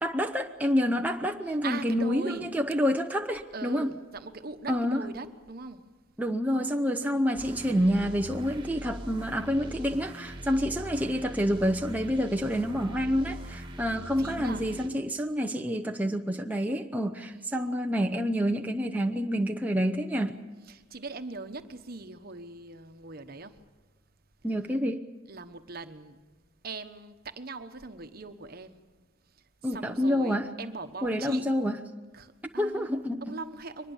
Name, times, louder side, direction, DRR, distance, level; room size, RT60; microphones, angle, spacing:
voice 1, 0.0-3.9 4.7-5.0 6.2-20.4 24.4-25.1 29.6-30.5 31.0-31.8 32.6-33.4, equal, 10° right, 0.7 m, -28 dB
voice 2, 1.5-2.5 3.5-5.9 7.0-7.3 10.5-10.9 14.2-14.6 17.3-17.6 20.7-23.6 25.3-26.2 26.6-28.8 29.7-31.5 32.1-32.9 33.2-33.9, right 3 dB, 50° right, 1.2 m, -40 dB
sound 1, 7.4-14.9, equal, 25° right, 1.7 m, -42 dB
23.5 x 20.5 x 7.3 m
head